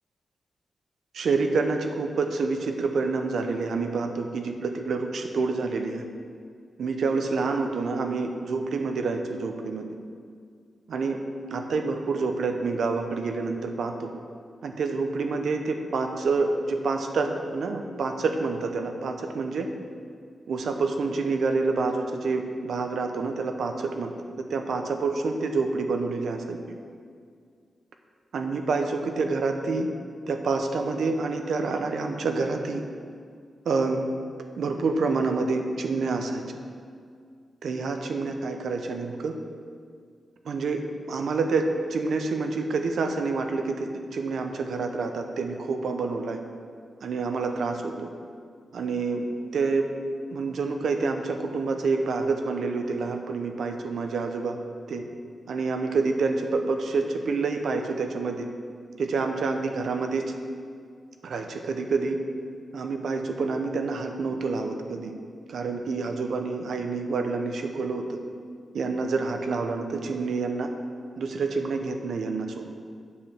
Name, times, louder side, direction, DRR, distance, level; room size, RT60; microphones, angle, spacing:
voice 1, 1.1-6.0 6.8-9.8 10.9-11.2 11.5-14.1 14.6-19.7 20.5-24.1 24.5-26.6 28.3-29.9 30.3-32.8 33.7-34.0 34.6-36.4 37.6-39.3 40.4-40.8 41.1-46.4 47.0-48.1 48.7-49.2 49.5-49.9 50.3-54.6 54.9-55.0 55.5-58.5 59.0-60.2 61.2-62.2 62.7-65.1 65.5-68.2 68.7-70.7 71.2-72.7, right 4 dB, 80° right, 4 dB, 0.7 m, -27 dB
8.3 x 4.9 x 7.2 m, 2.1 s
wide cardioid pair, 120°, 0 cm